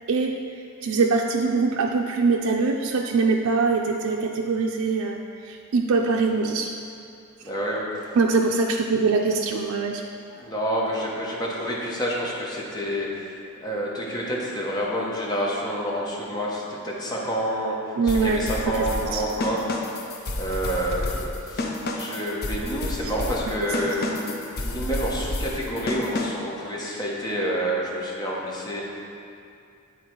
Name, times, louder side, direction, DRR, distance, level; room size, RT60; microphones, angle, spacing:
voice 1, 0.8-5.2 5.4-6.7 8.2-10.0 18.0-18.5 19.1-19.2, right 4 dB, 85° right, 1 dB, 0.4 m, -23 dB
voice 2, 7.4-8.1 10.3-19.6 20.3-24.3 24.6-28.8, equal, 20° left, -4 dB, 1.0 m, -28 dB
Latin Drum Break, 18.1-26.6, left 2 dB, 50° left, 0.6 m, -30 dB
8.3 x 3.9 x 4.5 m, 2.5 s
head